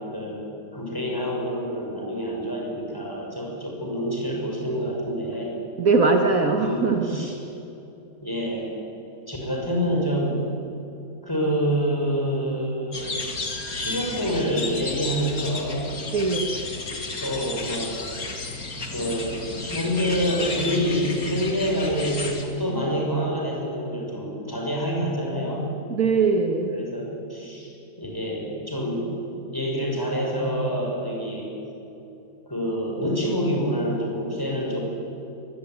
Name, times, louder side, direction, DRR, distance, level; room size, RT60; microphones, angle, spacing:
voice 1, 0.0-5.5 6.6-7.3 8.2-8.7 9.3-10.4 11.2-13.1 13.5-15.9 17.2-17.9 18.9-25.7 26.7-29.2 29.5-31.5 32.5-34.8, equal, 10° left, -2 dB, 6.4 m, -27 dB
voice 2, 5.8-7.3 16.1-16.5 25.9-26.7, right 4 dB, 55° right, 4 dB, 2.0 m, -21 dB
sound 1, 12.9-22.4, left 3 dB, 55° left, 2.8 m, -33 dB
23.0 x 20.5 x 9.6 m, 2.9 s
omnidirectional pair, 1.8 m